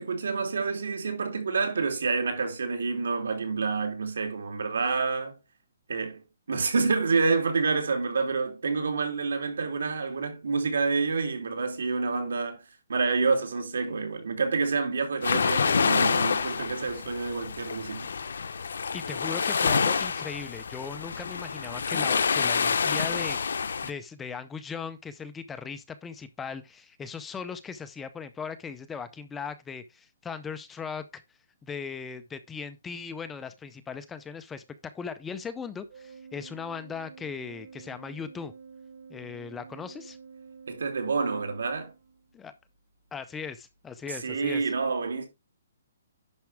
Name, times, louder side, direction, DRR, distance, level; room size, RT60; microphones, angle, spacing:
voice 1, 0.0-5.4 5.9-6.2 6.5-12.6 12.9-18.1 40.7-41.9 44.1-45.3, right 4 dB, 80° right, 3.2 m, -28 dB
sound 1, 15.2-23.9, left 5 dB, 80° left, 0.9 m, -27 dB
voice 2, 18.9-31.2 31.6-38.5 39.1-40.2 42.3-42.5 43.1-44.6, left 6 dB, 10° left, 0.5 m, -38 dB
Organ, 35.9-42.5, right 5 dB, 55° right, 3.5 m, -49 dB
10.5 x 5.8 x 3.4 m
hypercardioid pair, 170°, 0 cm